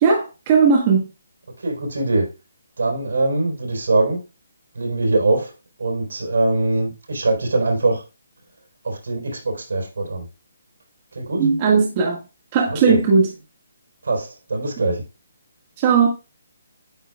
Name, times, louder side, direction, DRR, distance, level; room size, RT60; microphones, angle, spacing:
voice 1, 0.0-1.1 11.4-12.2 12.5-13.3 15.8-16.1, right 5 dB, 30° right, 1.5 m, -17 dB
voice 2, 1.6-2.3 2.8-4.2 4.7-5.5 5.8-8.0 8.8-10.3 11.1-11.5 12.7-13.0 14.0-15.0, right 2 dB, 80° right, 3.6 m, -22 dB
9.2 x 4.5 x 2.3 m
hypercardioid pair, 155°, 0 cm